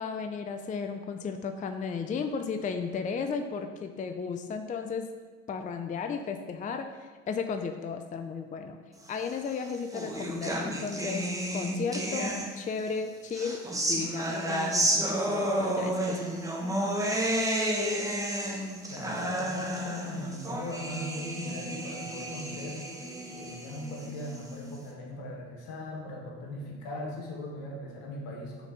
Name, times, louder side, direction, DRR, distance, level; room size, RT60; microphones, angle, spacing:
voice 1, 0.0-5.1 5.5-8.8 9.1-11.3 11.5-13.6 13.9-16.3, left 5 dB, 20° left, 6 dB, 0.4 m, -34 dB
sound 1, 9.4-12.8 13.3-24.8, right 1 dB, 10° right, 1.1 m, -31 dB
voice 2, 18.9-22.9 23.3-28.7, left 1 dB, 70° left, -1 dB, 1.7 m, -40 dB
5.9 x 4.2 x 5.2 m, 1.5 s
hypercardioid pair, 65°, 35 cm